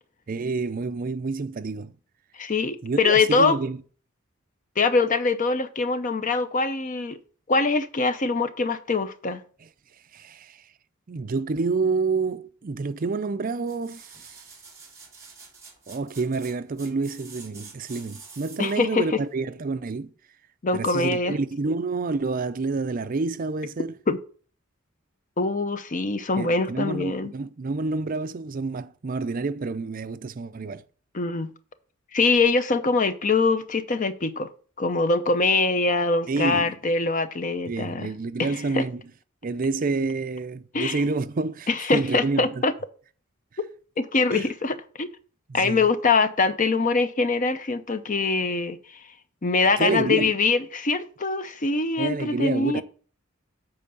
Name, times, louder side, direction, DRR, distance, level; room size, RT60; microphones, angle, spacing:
voice 1, 0.3-1.9 2.8-3.8 10.1-10.6 11.1-14.4 15.9-20.1 20.7-24.0 26.4-30.8 36.3-36.7 37.7-39.0 39.4-42.6 44.3-44.5 45.5-45.9 49.8-50.3 52.0-52.8, right 3 dB, 40° right, 0.5 m, -28 dB
voice 2, 2.4-3.6 4.8-7.2 7.5-9.4 18.6-19.2 20.6-21.4 24.1-24.2 25.4-27.3 31.1-31.5 32.1-34.5 34.8-38.1 38.4-38.8 40.7-41.0 41.7-42.7 44.0-45.1 45.5-48.8 49.4-52.8, left 3 dB, 40° left, 0.7 m, -23 dB
sound 1, 13.6-18.9 19.3-19.4, right 4 dB, 15° right, 2.6 m, -47 dB
7.7 x 4.5 x 6.7 m
head